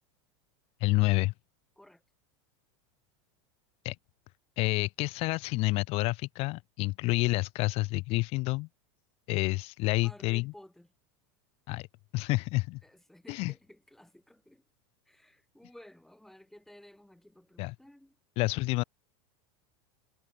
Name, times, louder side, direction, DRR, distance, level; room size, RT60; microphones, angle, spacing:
voice 1, 0.8-1.3 3.8-4.0 4.6-8.7 9.3-10.5 11.7-11.9 12.1-12.8 13.3-13.5 17.6-17.7 18.4-18.8, left 23 dB, 45° left, 0.9 m, -29 dB
voice 2, 10.0-10.9 12.8-14.6 15.1-18.2, left 1 dB, ahead, 5.5 m, -54 dB
supercardioid pair, 145°, 14 cm